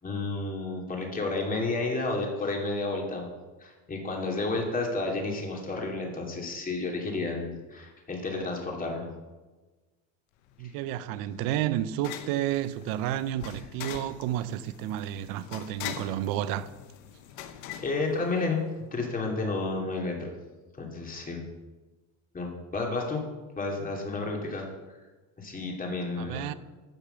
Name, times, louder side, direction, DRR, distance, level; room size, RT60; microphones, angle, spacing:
voice 1, 0.0-9.1 17.8-20.3 20.8-21.4 22.3-23.2 23.6-24.7 25.4-26.5, left 3 dB, 25° left, 2.8 m, -31 dB
sound 1, 10.5-18.8, left 10 dB, 80° left, 1.0 m, -43 dB
voice 2, 10.6-16.7 26.2-26.5, right 12 dB, 70° right, 0.8 m, -31 dB
10.5 x 6.8 x 7.0 m
supercardioid pair, 115°, 35 cm